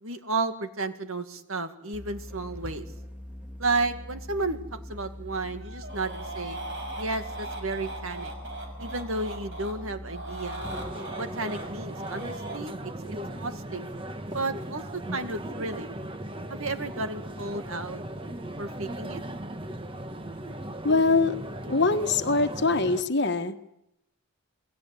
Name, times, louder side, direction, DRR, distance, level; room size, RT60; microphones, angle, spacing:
voice 1, 0.0-2.9 3.6-6.6 7.0-8.3 8.8-10.7 11.2-13.9 14.3-15.9 16.5-18.0 18.6-19.2, right 3 dB, 70° right, 8 dB, 2.2 m, -32 dB
sound 1, 1.9-11.0, left 1 dB, 5° right, 3.2 m, -42 dB
sound 2, 5.5-9.8 10.1-12.6 14.3-14.6, right 2 dB, 55° right, 6.2 m, -39 dB
sound 3, 10.6-23.0, right 1 dB, 25° right, 1.4 m, -37 dB
voice 2, 20.8-21.3 21.7-23.7, left 3 dB, 50° left, 9 dB, 1.4 m, -23 dB
28.0 x 21.5 x 8.5 m, 0.83 s
head